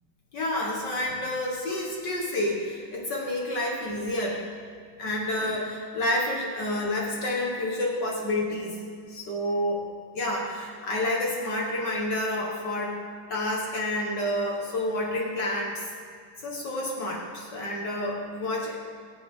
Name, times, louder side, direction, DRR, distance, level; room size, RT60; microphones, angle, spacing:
voice 1, 0.3-4.4 5.0-8.8 9.1-9.9 10.1-13.0 13.3-15.8 16.4-18.8, left 1 dB, 65° left, -2 dB, 2.2 m, -29 dB
22.5 x 7.8 x 3.8 m, 2.2 s
omnidirectional pair, 2.0 m